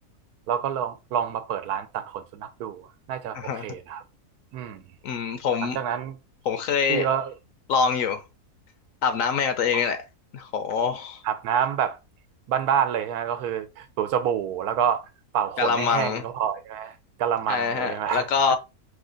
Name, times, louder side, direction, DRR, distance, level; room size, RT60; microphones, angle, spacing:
voice 1, 0.5-4.0 4.5-4.8 5.6-6.2 6.9-7.3 9.7-9.8 11.2-12.0 12.5-15.1 15.3-18.3, right 8 dB, 80° right, 1.1 m, -27 dB
voice 2, 3.3-3.7 5.0-5.8 6.4-7.1 7.7-8.2 9.0-10.0 10.3-11.2 15.6-16.2 17.5-18.6, left 6 dB, 70° left, 0.9 m, -25 dB
4.9 x 2.3 x 3.8 m
omnidirectional pair, 1.7 m